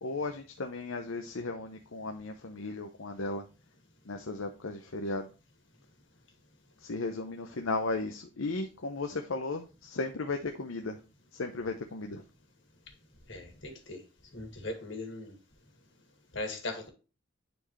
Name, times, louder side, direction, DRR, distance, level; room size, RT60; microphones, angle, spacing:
voice 1, 0.0-3.4 4.1-5.3 6.8-11.0 11.3-12.2, left 3 dB, 80° left, 0.8 m, -35 dB
voice 2, 13.3-14.0 14.3-15.3 16.3-16.9, left 2 dB, 65° left, 2.3 m, -39 dB
10.0 x 4.5 x 3.1 m
head